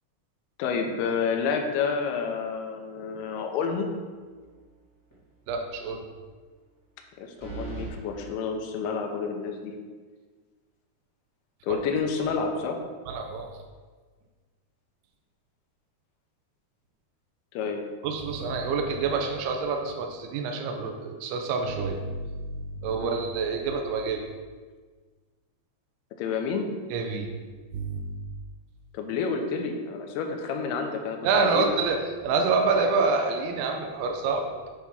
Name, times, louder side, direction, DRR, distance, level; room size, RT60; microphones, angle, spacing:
voice 1, 0.6-3.9 7.2-9.7 11.6-12.8 17.5-17.9 23.0-23.2 26.2-26.7 28.9-31.7, left 5 dB, 80° left, 4 dB, 2.7 m, -29 dB
sound 1, 4.3-4.7 5.1-5.2 7.4-7.9, right 5 dB, 30° left, 0.3 m, -38 dB
voice 2, 5.5-6.1 11.7-11.8 13.1-13.5 18.0-24.3 26.9-27.3 27.7-28.2 31.2-32.0 32.2-34.7, right 4 dB, 85° right, 2 dB, 2.6 m, -27 dB
8.6 x 3.5 x 5.6 m, 1.4 s
omnidirectional pair, 4.7 m